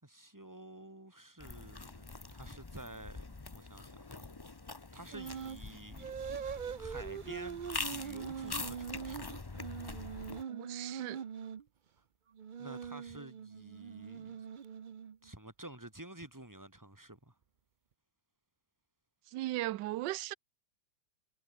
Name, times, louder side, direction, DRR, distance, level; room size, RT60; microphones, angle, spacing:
voice 1, 0.0-4.3 4.9-6.2 6.7-9.4 12.6-14.4 15.2-17.3, right 1 dB, 10° right, 3.0 m, -51 dB
sound 1, 1.4-10.4, left 3 dB, 25° left, 0.6 m, -44 dB
sound 2, 5.1-5.6 6.0-11.6 12.3-15.3, right 7 dB, 60° right, 0.5 m, -42 dB
voice 2, 10.5-11.2 19.3-20.3, right 16 dB, 85° right, 1.3 m, -37 dB
omnidirectional pair, 1.9 m